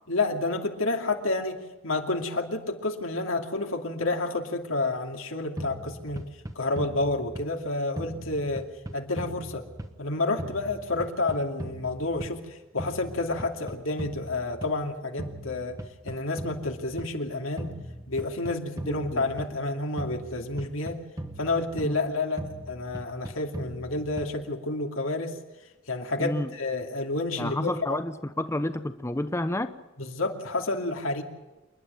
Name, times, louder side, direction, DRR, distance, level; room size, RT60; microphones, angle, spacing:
voice 1, 0.1-6.3 6.5-8.7 8.9-9.6 10.0-15.8 16.0-17.7 18.1-21.0 21.4-25.4 25.9-28.0 30.0-31.2, left 2 dB, 90° left, 4 dB, 2.6 m, -30 dB
sound 1, 5.6-7.7 8.0-10.1 10.4-12.5 12.8-14.9 15.2-17.2 17.6-19.7 20.0-22.1 22.4-24.5, right 1 dB, 15° right, 1.2 m, -39 dB
voice 2, 18.9-19.3 21.8-21.9 26.2-26.5 27.4-29.7, left 1 dB, 15° left, 10 dB, 0.8 m, -30 dB
28.0 x 11.0 x 9.2 m, 1.1 s
head